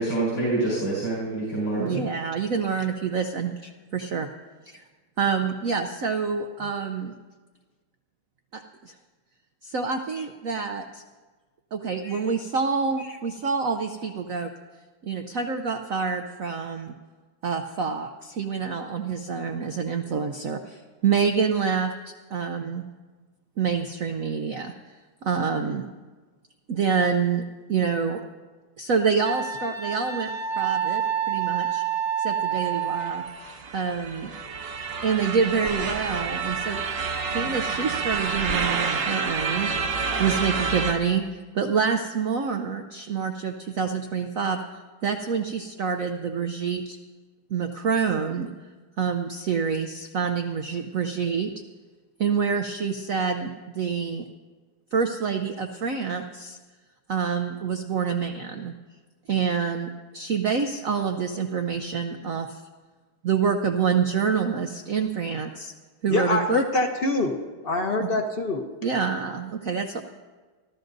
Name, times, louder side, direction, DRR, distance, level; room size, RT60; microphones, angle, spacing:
voice 1, 0.0-2.1, right 2 dB, 75° left, -7 dB, 5.8 m, -26 dB
voice 2, 1.8-3.5 3.9-4.3 4.7-4.8 5.2-7.2 8.5-8.9 9.6-11.0 11.7-14.5 15.0-16.9 17.4-21.9 22.3-22.8 23.6-24.7 25.2-25.8 26.7-27.4 27.7-28.2 28.8-31.8 32.2-33.2 33.7-34.3 35.0-36.8 37.3-44.6 45.0-47.0 47.5-48.5 49.0-51.5 52.2-54.2 54.9-56.6 57.1-58.7 59.3-62.6 63.2-65.7 66.0-66.6 68.0-68.1 68.8-70.0, right 6 dB, 85° right, 6 dB, 0.7 m, -27 dB
Wind instrument woodwind instrument, 29.2-33.3, right 8 dB, ahead, 0.9 m, -28 dB
sound 1, 32.8-40.9, right 5 dB, 50° right, 1.1 m, -29 dB
voice 3, 66.1-67.4 67.6-68.7, left 2 dB, 40° left, 3 dB, 0.8 m, -25 dB
27.0 x 13.0 x 2.6 m, 1.3 s
omnidirectional pair, 2.3 m